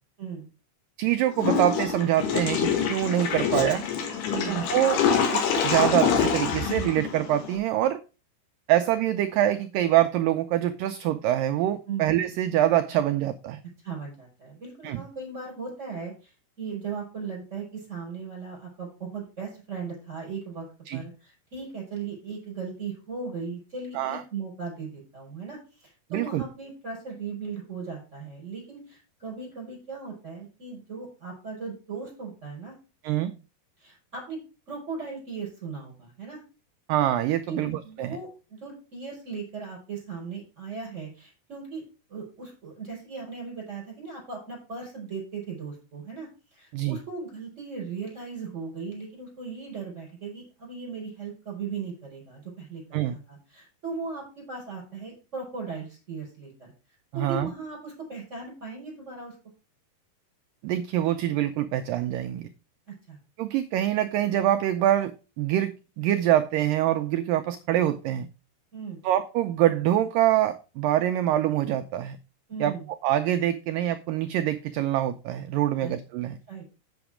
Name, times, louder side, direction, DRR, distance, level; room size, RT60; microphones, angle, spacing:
voice 1, 1.0-3.8 4.5-5.0 5.3-8.0 8.7-13.6 14.8-15.0 20.9-21.0 24.0-24.2 26.1-26.4 33.0-33.3 36.9-38.2 46.7-47.0 52.9-53.2 57.1-57.5 60.6-62.5 63.4-68.3 69.0-72.2 72.6-76.4, right 12 dB, 90° right, 9 dB, 1.9 m, -25 dB
Water / Toilet flush, 1.4-7.6, left 7 dB, 80° left, 3.5 m, -26 dB
voice 2, 13.8-16.3 16.6-20.6 20.9-32.7 33.8-34.4 34.7-36.4 37.4-41.8 42.1-56.7 57.1-59.3 63.1-63.2 68.7-69.0 72.5-72.9 75.8-75.9 76.5-76.7, right 5 dB, 15° right, -2 dB, 5.2 m, -37 dB
8.0 x 7.0 x 4.9 m, 0.32 s
omnidirectional pair, 4.5 m